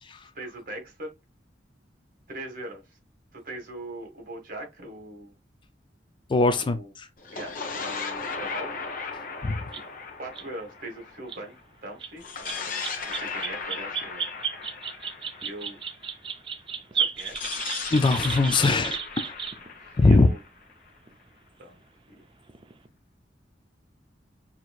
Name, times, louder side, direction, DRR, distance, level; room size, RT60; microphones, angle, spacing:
voice 1, 0.3-1.1 2.3-2.8 3.3-5.3 6.4-6.9 7.3-8.7 9.0-9.2 10.2-11.6 11.8-12.2 13.0-14.2 15.4-15.8 16.9-17.4 19.8-20.4 21.6-21.8 22.1-22.2, right 1 dB, 50° right, 1.7 m, -40 dB
voice 2, 6.3-6.8 9.4-9.6 17.9-19.3 20.0-20.3, left 3 dB, 25° left, 0.3 m, -20 dB
sound 1, 7.2-11.6 12.2-16.1 17.2-21.0, left 5 dB, 50° left, 0.9 m, -36 dB
sound 2, 9.7-9.8 10.4-10.5 11.2-11.4 12.0-12.1 12.5-19.7 21.1-21.2 22.5-22.9, right 7 dB, 30° right, 0.5 m, -33 dB
6.2 x 2.8 x 2.4 m
head